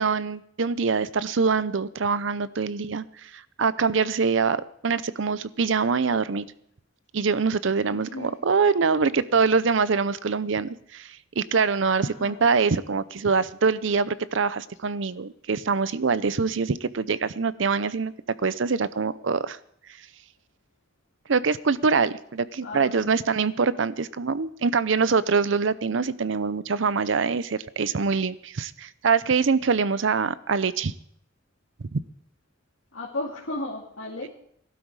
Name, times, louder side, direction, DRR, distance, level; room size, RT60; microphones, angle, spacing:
voice 1, 0.0-6.5 7.1-18.1 18.4-19.6 21.3-30.9 31.8-32.0, right 5 dB, 65° right, 16 dB, 0.6 m, -24 dB
voice 2, 7.9-8.3 12.0-12.4 22.6-23.2 32.9-34.3, left 2 dB, 80° left, -4 dB, 2.4 m, -35 dB
18.0 x 12.0 x 4.8 m, 0.69 s
head